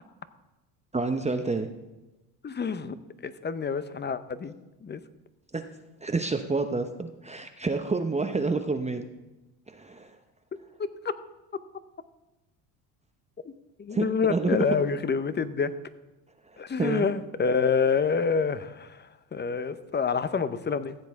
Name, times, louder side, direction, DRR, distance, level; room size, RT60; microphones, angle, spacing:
voice 1, 0.9-1.7 5.5-5.6 6.0-9.1 9.7-10.1 13.9-14.6 16.8-17.1, right 3 dB, 15° right, 6 dB, 0.8 m, -28 dB
voice 2, 2.4-3.0 3.2-4.5 4.8-5.0 10.8-11.1 13.4-13.5 13.8-15.7 16.6-21.0, left 5 dB, 25° left, 13 dB, 0.7 m, -27 dB
15.0 x 8.0 x 3.6 m, 1.0 s
supercardioid pair, 75°, 43 cm